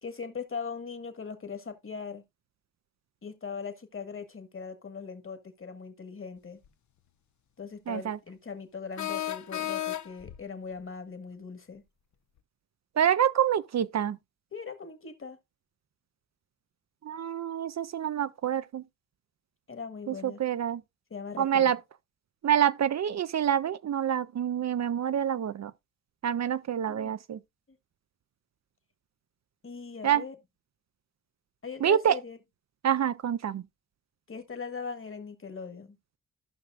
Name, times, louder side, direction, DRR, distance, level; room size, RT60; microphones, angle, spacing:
voice 1, 0.0-2.2 3.2-6.6 7.6-11.8 14.5-15.4 19.7-20.4 21.1-21.7 26.9-27.1 29.6-30.3 31.6-32.4 34.3-36.0, left 5 dB, 40° left, 1.6 m, -40 dB
sound 1, 6.7-6.8 9.0-10.4, left 12 dB, 65° left, 0.6 m, -33 dB
voice 2, 7.9-8.2 13.0-14.2 17.0-18.8 20.1-20.8 21.4-21.8 22.4-25.7 26.2-27.4 30.0-30.2 31.8-32.2 32.8-33.6, right 9 dB, 55° right, 0.5 m, -27 dB
14.5 x 5.7 x 2.4 m
cardioid pair, 65°, 32 cm